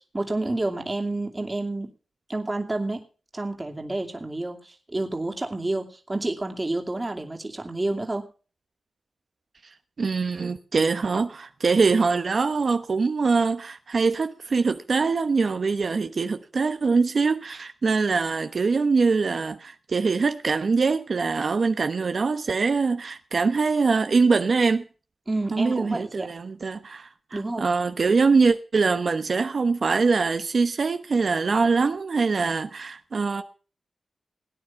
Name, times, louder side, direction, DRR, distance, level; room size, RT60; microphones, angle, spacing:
voice 1, 0.0-1.9 2.3-3.0 3.3-8.3 25.3-26.3 27.3-27.7, right 2 dB, 25° right, 2.6 m, -29 dB
voice 2, 10.0-24.8 25.5-33.4, right 4 dB, 60° right, 1.0 m, -23 dB
18.0 x 9.5 x 5.8 m
cardioid pair, 70°, 0 cm